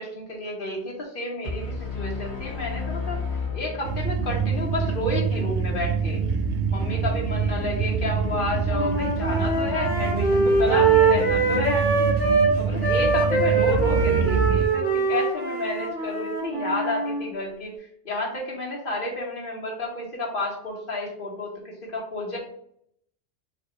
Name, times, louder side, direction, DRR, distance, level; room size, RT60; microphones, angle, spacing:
voice 1, 0.0-3.2 3.5-6.2 6.7-11.9 12.5-17.7 18.0-22.4, left 2 dB, 50° left, -2 dB, 1.4 m, -30 dB
sound 1, 1.4-4.5, left 4 dB, 70° left, 1.5 m, -32 dB
sound 2, 3.8-14.7, right 5 dB, 85° right, 0.9 m, -26 dB
sound 3, 8.7-12.5 12.8-17.2, right 4 dB, 10° right, 1.6 m, -23 dB
4.4 x 2.7 x 3.9 m, 0.67 s
omnidirectional pair, 1.1 m